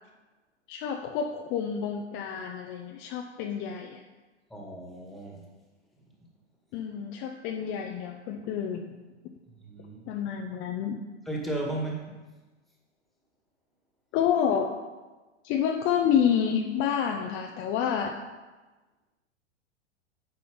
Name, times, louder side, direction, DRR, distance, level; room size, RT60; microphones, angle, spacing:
voice 1, 0.7-4.0 6.7-8.9 10.1-11.0 14.1-14.7 15.4-18.1, left 8 dB, 35° left, 3 dB, 0.7 m, -28 dB
voice 2, 4.5-5.4 9.5-10.1 11.3-12.2, right 2 dB, ahead, -2 dB, 1.9 m, -35 dB
8.7 x 5.2 x 5.3 m, 1.2 s
hypercardioid pair, 110°, 36 cm